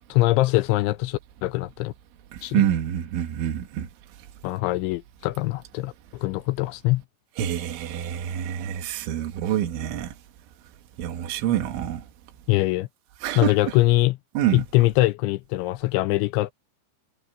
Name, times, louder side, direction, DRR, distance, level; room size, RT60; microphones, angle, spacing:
voice 1, 0.1-1.9 2.4-2.6 4.4-7.0 12.5-12.9 13.4-14.2 14.5-16.5, left 19 dB, 85° left, 2.8 m, -23 dB
voice 2, 2.5-3.9 7.4-10.1 11.0-12.0 13.2-13.5 14.4-14.6, right 11 dB, 75° right, 4.0 m, -26 dB
omnidirectional pair, 5.6 m